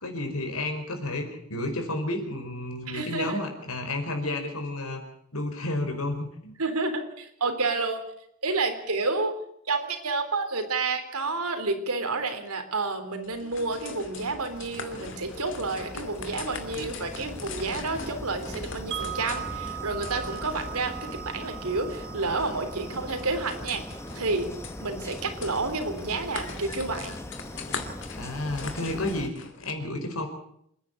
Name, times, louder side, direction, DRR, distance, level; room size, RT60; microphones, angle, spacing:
voice 1, 0.0-5.0 5.3-6.5 28.1-30.3, left 2 dB, 80° left, 5 dB, 4.9 m, -31 dB
voice 2, 2.9-3.4 6.6-8.0 8.4-9.3 9.7-23.8 24.1-24.5 24.8-27.2, right 3 dB, 90° right, 7 dB, 3.6 m, -30 dB
sound 1, 13.2-29.7, left 4 dB, 55° left, 2.5 m, -42 dB
sound 2, 13.4-29.3, left 1 dB, 10° left, 0.8 m, -40 dB
Wind chime, 18.9-24.9, right 14 dB, 55° right, 1.2 m, -40 dB
27.5 x 10.0 x 9.8 m, 0.73 s
head